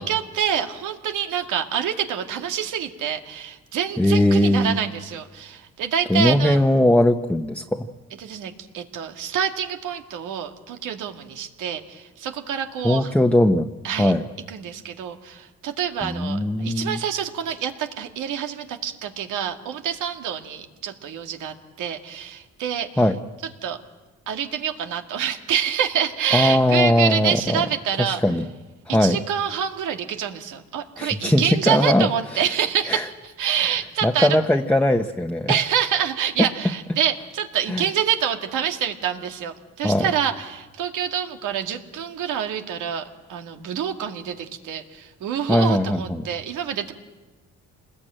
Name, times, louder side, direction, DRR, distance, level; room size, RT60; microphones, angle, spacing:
voice 1, 0.0-6.6 8.2-13.1 13.8-14.1 14.5-22.9 23.6-23.8 24.3-28.2 28.9-34.4 35.5-46.9, right 8 dB, 85° right, 5 dB, 2.2 m, -27 dB
voice 2, 4.0-4.8 6.1-7.9 12.8-13.7 14.0-14.2 16.0-17.0 23.0-23.2 26.3-27.6 28.0-28.5 28.9-29.2 31.0-32.5 32.9-33.1 34.0-35.6 36.4-36.5 37.7-37.8 39.8-40.0 45.5-46.3, left 1 dB, 5° left, 3 dB, 1.1 m, -19 dB
27.5 x 20.5 x 9.0 m, 1.2 s
cardioid pair, 90°, 30 cm